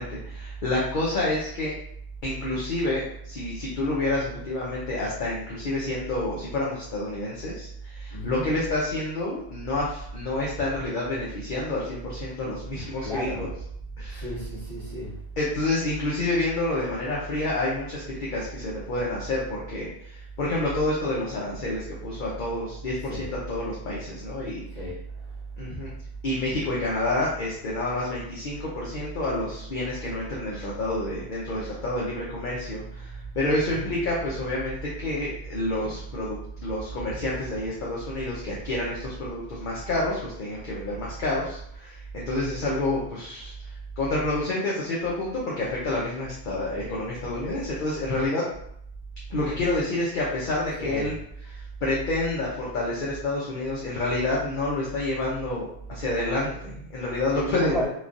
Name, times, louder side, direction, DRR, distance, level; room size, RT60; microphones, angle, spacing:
voice 1, 0.0-1.7 2.2-13.5 14.0-14.3 15.4-24.8 25.6-25.9 26.2-48.5 49.3-57.8, left 2 dB, 55° left, -5 dB, 0.7 m, -29 dB
voice 2, 8.1-8.5 13.0-13.5 14.1-15.1 23.0-23.3 24.7-24.9 33.6-34.0 34.7-34.8 35.7-35.8 50.8-51.1 57.3-57.9, equal, 25° left, -8 dB, 1.2 m, -32 dB
3.1 x 2.3 x 2.5 m, 0.69 s
omnidirectional pair, 1.1 m